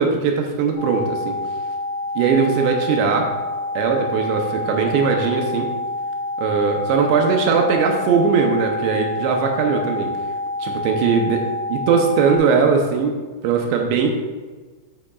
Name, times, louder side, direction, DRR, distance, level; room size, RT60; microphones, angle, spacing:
voice 1, 0.0-1.4 2.2-3.3 3.8-5.7 6.4-10.1 10.6-11.4 11.7-13.1 13.4-14.2, right 5 dB, 80° right, 2 dB, 2.5 m, -19 dB
sound 1, 0.7-12.4, left 2 dB, 30° right, 2.5 m, -27 dB
10.0 x 8.5 x 2.4 m, 1.3 s
omnidirectional pair, 5.9 m